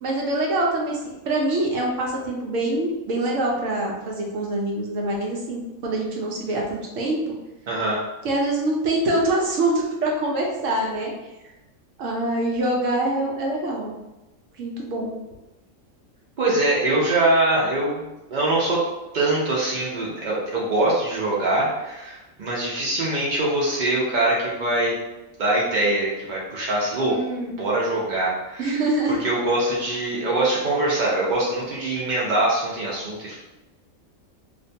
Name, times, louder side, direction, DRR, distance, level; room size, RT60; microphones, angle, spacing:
voice 1, 0.0-7.3 8.2-11.1 12.0-14.0 14.6-15.2 27.1-27.6 28.6-29.2, right 1 dB, 70° right, -1 dB, 0.8 m, -25 dB
voice 2, 7.7-8.0 16.4-18.0 18.3-18.8 19.1-24.9 25.4-27.2 27.6-28.8 29.2-33.4, right 2 dB, 90° right, -5 dB, 0.4 m, -23 dB
2.5 x 2.2 x 2.6 m, 1.0 s
omnidirectional pair, 1.5 m